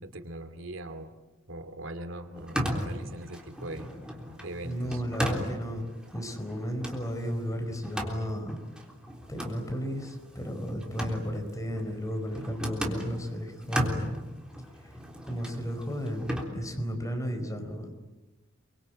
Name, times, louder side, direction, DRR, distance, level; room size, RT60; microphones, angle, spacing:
voice 1, 0.0-1.1 1.5-3.9 4.4-5.0, right 1 dB, 80° right, 8 dB, 2.6 m, -40 dB
sound 1, 2.4-13.2 13.6-16.4, equal, 5° right, 3.7 m, -35 dB
voice 2, 4.6-5.8 6.1-8.6 9.3-14.1 14.8-14.9 15.2-17.9, equal, 15° left, 4 dB, 4.5 m, -34 dB
27.5 x 24.0 x 8.8 m, 1.2 s
head